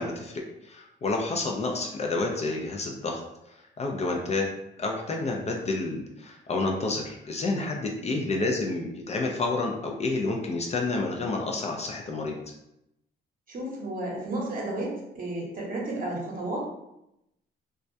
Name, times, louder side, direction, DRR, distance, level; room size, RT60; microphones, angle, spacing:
voice 1, 0.0-3.2 3.8-4.5 4.8-12.4, left 3 dB, 35° left, 1 dB, 0.4 m, -29 dB
voice 2, 13.5-16.6, right 1 dB, 45° right, -2 dB, 0.8 m, -32 dB
2.2 x 2.1 x 2.6 m, 0.86 s
cardioid pair, 90°, 20 cm